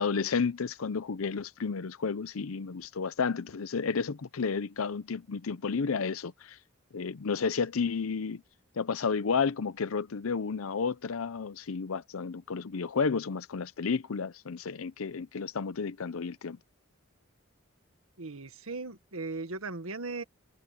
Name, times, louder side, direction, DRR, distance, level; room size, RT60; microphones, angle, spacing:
voice 1, 0.0-6.6 6.9-8.4 8.8-16.6, left 5 dB, 80° left, 0.6 m, -31 dB
voice 2, 18.2-20.2, right 3 dB, 80° right, 1.6 m, -37 dB
head